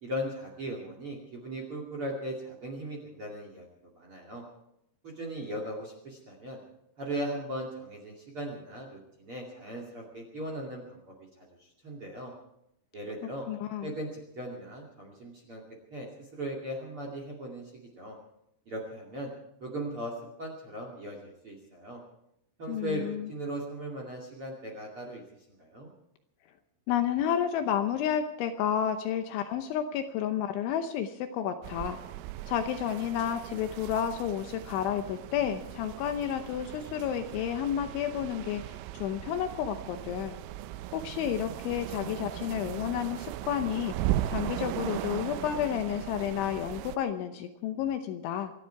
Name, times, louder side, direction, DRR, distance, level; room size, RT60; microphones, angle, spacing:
voice 1, 0.0-3.7 3.9-4.4 5.0-6.6 7.0-11.3 11.6-12.3 12.9-13.4 13.8-15.6 15.9-17.7 18.0-18.2 18.7-19.3 19.6-20.1 20.4-22.0 22.6-25.2 25.6-25.9, right 1 dB, 40° right, 1 dB, 2.2 m, -38 dB
voice 2, 13.5-13.9 22.7-23.3 26.9-32.0 32.5-40.4 40.9-43.9 44.3-48.5, left 9 dB, 75° left, 7 dB, 3.0 m, -31 dB
sound 1, 31.6-47.0, right 14 dB, 90° right, 3.4 m, -38 dB
26.0 x 11.5 x 4.7 m, 0.80 s
omnidirectional pair, 6.0 m